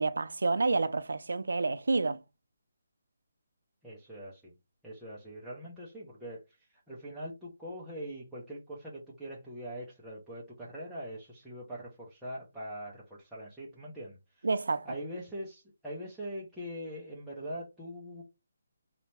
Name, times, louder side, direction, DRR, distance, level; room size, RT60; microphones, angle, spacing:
voice 1, 0.0-2.2 14.4-14.9, right 3 dB, 85° right, 0.3 m, -29 dB
voice 2, 3.8-4.5 4.8-6.4 6.7-14.5 14.9-18.2, equal, ahead, 0.4 m, -42 dB
2.7 x 2.1 x 2.9 m
hypercardioid pair, 180°, 0 cm